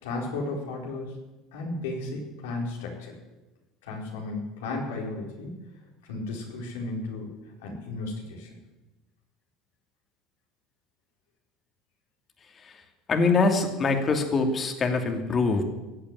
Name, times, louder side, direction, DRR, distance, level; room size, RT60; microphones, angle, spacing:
voice 1, 0.0-1.2 1.5-3.2 3.8-5.5 6.1-8.5, left 2 dB, 85° left, -1 dB, 4.6 m, -34 dB
voice 2, 13.1-15.6, left 3 dB, 35° left, 4 dB, 2.8 m, -23 dB
16.0 x 8.6 x 9.5 m, 1.1 s
supercardioid pair, 95°, 0 cm